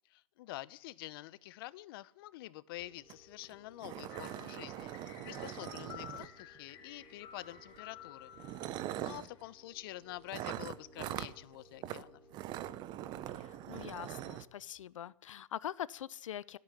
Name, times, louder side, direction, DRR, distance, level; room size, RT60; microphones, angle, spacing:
voice 1, 0.1-8.3 8.9-12.2, left 16 dB, 45° left, 0.8 m, -47 dB
sound 1, 2.8-14.8, equal, 5° right, 3.4 m, -63 dB
sound 2, 3.1-3.2 3.4-3.5 3.8-6.6 7.6-7.8 8.3-9.3 10.3-11.3 11.8-12.0 12.3-14.4, right 13 dB, 25° right, 0.8 m, -42 dB
sound 3, 4.1-9.5, left 9 dB, 25° left, 3.1 m, -53 dB
voice 2, 8.8-9.3 13.3-16.6, left 11 dB, 70° left, 0.6 m, -44 dB
14.0 x 9.4 x 9.9 m
hypercardioid pair, 140°, 17 cm